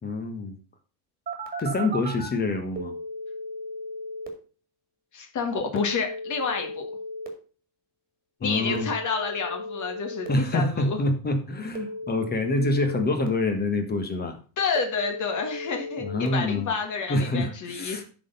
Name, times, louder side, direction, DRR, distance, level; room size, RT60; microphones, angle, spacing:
voice 1, 0.0-0.5 1.6-2.9 8.4-8.9 10.3-14.4 16.0-16.7 17.1-18.0, left 2 dB, 20° left, 6 dB, 1.3 m, -26 dB
Telephone, 1.3-2.3 2.8-4.3 5.8-7.3 8.7-10.3 11.7-13.3 14.8-16.3, equal, 15° right, 2.1 m, -35 dB
voice 2, 5.1-6.9 8.4-11.0 14.6-18.0, left 5 dB, 35° left, 4 dB, 1.7 m, -29 dB
11.0 x 4.2 x 5.3 m, 0.37 s
supercardioid pair, 130°, 50 cm